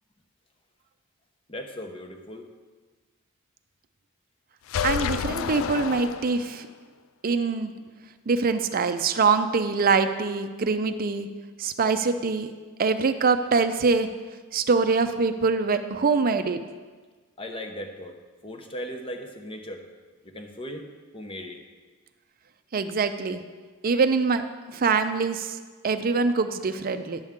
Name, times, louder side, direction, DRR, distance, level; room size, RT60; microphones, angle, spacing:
voice 1, 1.5-2.5 17.4-18.2 18.4-19.8 20.2-21.6, equal, 25° left, 4 dB, 0.8 m, -37 dB
sound 1, 4.7-6.7, left 8 dB, 65° left, 0.3 m, -29 dB
voice 2, 4.8-6.7 7.2-7.7 8.3-11.3 11.6-12.5 12.8-14.1 14.5-16.6 22.7-23.4 23.8-24.4 24.7-25.6 25.8-27.2, right 4 dB, 45° right, 9 dB, 0.5 m, -24 dB
10.5 x 7.8 x 3.6 m, 1.4 s
head